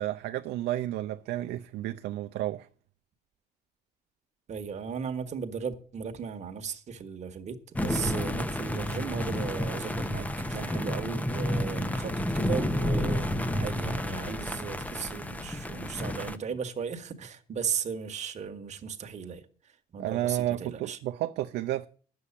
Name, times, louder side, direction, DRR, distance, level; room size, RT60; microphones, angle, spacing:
voice 1, 0.0-2.7 20.0-21.9, right 14 dB, 80° right, 0.6 m, -31 dB
voice 2, 4.5-19.4 19.9-21.0, right 6 dB, 45° right, 1.5 m, -36 dB
sound 1, 7.7-16.4, left 1 dB, 10° left, 0.8 m, -30 dB
9.9 x 7.1 x 8.5 m
cardioid pair, 110°, 17 cm